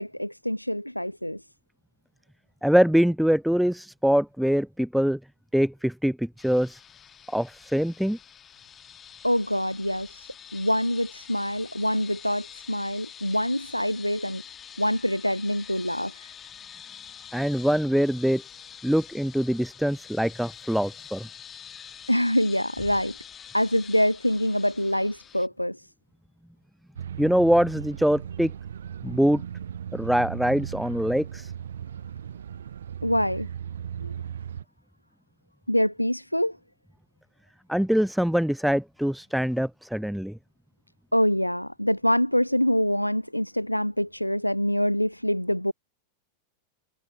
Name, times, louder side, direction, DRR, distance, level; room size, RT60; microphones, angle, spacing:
voice 1, 0.0-1.4 9.2-14.4 14.8-16.3 22.1-23.2 23.5-25.9 33.0-33.5 34.0-34.1 35.7-36.6 41.1-45.7, equal, 90° left, 1.2 m, -25 dB
voice 2, 2.6-5.2 5.5-6.8 7.3-8.2 17.3-18.4 18.8-21.3 27.2-28.5 29.0-29.4 29.9-31.5 37.7-40.4, equal, ahead, 0.4 m, -23 dB
sound 1, 6.4-25.5, left 8 dB, 25° left, 2.6 m, -46 dB
sound 2, 27.0-34.6, right 9 dB, 65° right, 0.6 m, -37 dB
figure-of-eight pair, 90°, 0 cm